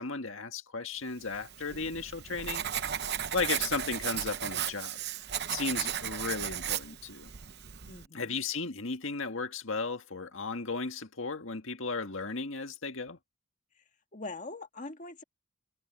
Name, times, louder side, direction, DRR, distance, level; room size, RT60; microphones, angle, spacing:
voice 1, 0.0-2.6 3.3-5.0 5.5-7.3 8.1-13.2, left 4 dB, 65° left, 1.8 m, -35 dB
Writing, 1.3-8.1, right 10 dB, 50° right, 0.8 m, -35 dB
voice 2, 7.9-8.4 13.7-13.8 14.1-15.2, left 3 dB, 35° left, 1.8 m, -43 dB
head